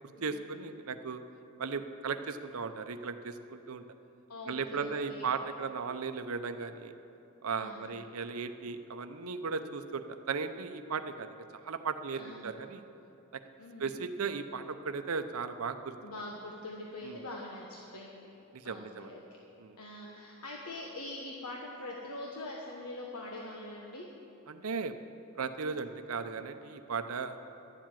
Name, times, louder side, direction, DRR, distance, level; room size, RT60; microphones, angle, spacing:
voice 1, 0.2-1.2 1.6-3.8 4.5-6.9 7.4-11.3 11.6-12.8 13.3-13.4 13.8-15.9 17.0-17.2 18.5-19.1 19.6-19.8 24.5-24.9 25.4-27.4, right 5 dB, 75° right, 9 dB, 0.7 m, -36 dB
voice 2, 4.3-5.3 7.6-7.9 12.1-12.5 13.6-13.9 16.0-18.3 18.6-19.2 19.8-24.1, left 2 dB, 90° left, -2 dB, 1.2 m, -43 dB
12.0 x 7.5 x 9.0 m, 2.8 s
head